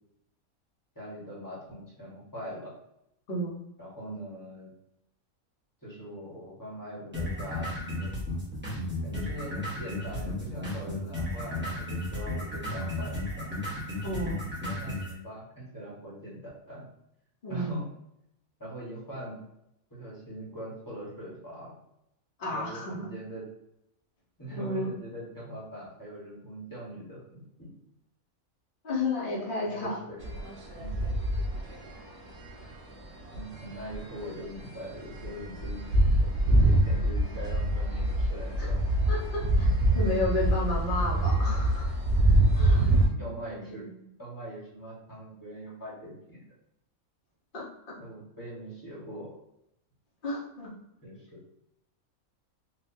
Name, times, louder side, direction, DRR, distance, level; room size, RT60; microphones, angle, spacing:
voice 1, 0.9-2.7 3.8-4.7 5.8-8.2 9.0-13.5 14.7-16.8 17.5-17.9 18.6-19.4 19.9-21.7 22.5-23.4 24.4-27.7 29.6-30.2 30.8-31.1 33.3-35.8 36.1-38.8 41.5-41.6 43.2-43.9 44.2-46.4 48.0-49.3 51.0-51.4, equal, 15° left, -7 dB, 1.4 m, -42 dB
sound 1, 7.1-15.1, left 1 dB, 10° right, 1.1 m, -34 dB
voice 2, 14.0-14.4 17.4-17.8 22.4-23.1 24.5-24.9 28.8-30.0 38.6-38.7 39.1-41.8 42.5-42.8 43.8-43.9 47.5-47.6 50.2-50.7, left 1 dB, 40° left, -5 dB, 1.2 m, -32 dB
sound 2, 30.2-31.9 32.4-32.7 33.3-34.0 34.2-34.3 34.6-34.7 34.9-43.1, right 1 dB, 85° right, 1.5 m, -25 dB
4.3 x 2.7 x 2.7 m, 0.81 s
omnidirectional pair, 1.5 m